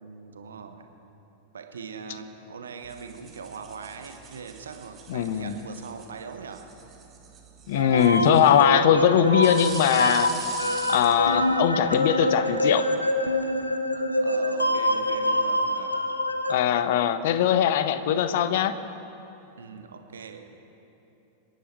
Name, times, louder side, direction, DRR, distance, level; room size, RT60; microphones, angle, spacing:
voice 1, 0.0-0.9 1.5-6.7 14.1-16.0 19.6-20.6, right 5 dB, 70° right, 6 dB, 1.2 m, -41 dB
sound 1, 2.8-12.0, right 6 dB, 25° right, 1.7 m, -44 dB
voice 2, 5.1-5.5 7.7-10.3 10.9-12.9 16.5-18.7, left 10 dB, 55° left, 12 dB, 0.7 m, -21 dB
sound 2, 7.7-16.5, left 1 dB, 85° left, 0.9 m, -25 dB
26.0 x 10.5 x 4.7 m, 2.9 s
figure-of-eight pair, 90°, 0 cm